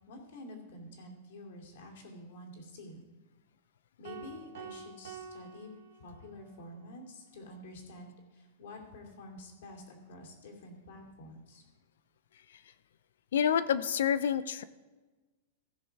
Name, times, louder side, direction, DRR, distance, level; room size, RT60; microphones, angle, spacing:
voice 1, 0.1-3.0 4.0-5.7 6.0-11.7, left 1 dB, 65° left, 1 dB, 2.7 m, -49 dB
sound 1, 4.0-6.5, right 6 dB, 65° right, 1.1 m, -48 dB
voice 2, 13.3-14.6, left 8 dB, 85° left, 15 dB, 0.5 m, -28 dB
15.5 x 6.4 x 4.7 m, 1.3 s
supercardioid pair, 165°, 0 cm